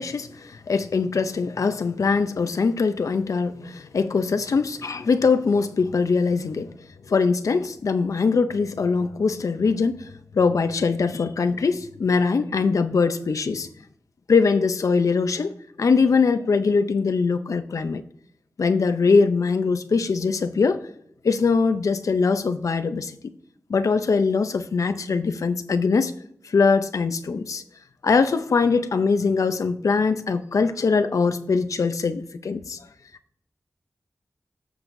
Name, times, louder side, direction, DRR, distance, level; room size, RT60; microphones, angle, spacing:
voice 1, 0.0-6.7 7.1-13.7 14.3-18.0 18.6-20.8 21.2-23.1 23.7-26.1 26.4-27.6 28.0-32.8, left 4 dB, 80° left, 10 dB, 0.6 m, -22 dB
14.0 x 6.3 x 2.6 m, 0.68 s
wide cardioid pair, 80°, 6 cm